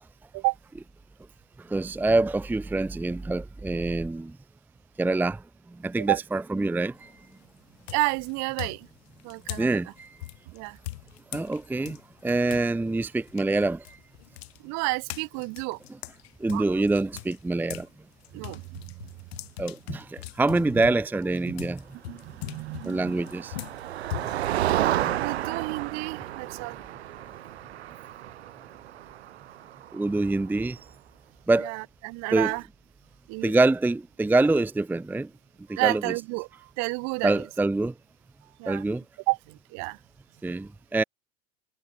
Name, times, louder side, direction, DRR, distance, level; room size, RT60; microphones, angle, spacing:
voice 1, 1.7-4.3 5.0-5.4 5.8-7.1 9.6-10.1 11.3-12.0 12.2-13.8 16.4-17.9 19.6-21.8 22.8-23.5 29.9-30.8 31.5-31.7 32.3-32.5 33.4-35.3 35.7-36.0 37.2-37.9 38.7-39.0 40.4-41.0, right 2 dB, 5° right, 0.7 m, -25 dB
sound 1, 6.9-7.3 7.8-12.7 13.0-17.9 18.2-25.6, left 17 dB, 70° left, 6.0 m, -41 dB
voice 2, 7.9-8.9 9.2-9.7 10.5-10.8 14.6-15.8 16.5-16.6 18.3-18.9 20.7-20.8 21.5-21.6 22.1-23.1 25.2-26.8 31.6-32.6 33.3-33.6 35.7-37.4 38.6-38.8 39.3-40.0, right 30 dB, 55° right, 3.8 m, -31 dB
Motor vehicle (road), 22.7-30.4, right 13 dB, 80° right, 2.5 m, -31 dB
hypercardioid pair, 95°, 32 cm